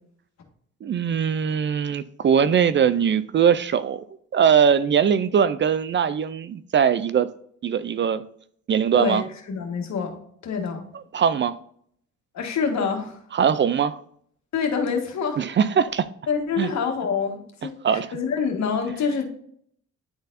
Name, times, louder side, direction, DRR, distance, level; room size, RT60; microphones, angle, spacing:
voice 1, 0.8-4.0 4.3-7.3 7.6-8.2 8.7-9.2 11.1-11.5 13.3-14.0 15.4-16.1 16.6-16.7 17.8-18.1, right 7 dB, 40° right, 15 dB, 0.4 m, -21 dB
voice 2, 8.9-10.2 10.4-10.8 12.3-13.2 14.5-15.4 16.3-19.2, left 6 dB, 65° left, 3 dB, 1.7 m, -26 dB
10.5 x 4.0 x 2.6 m, 0.64 s
cardioid pair, 90°, 30 cm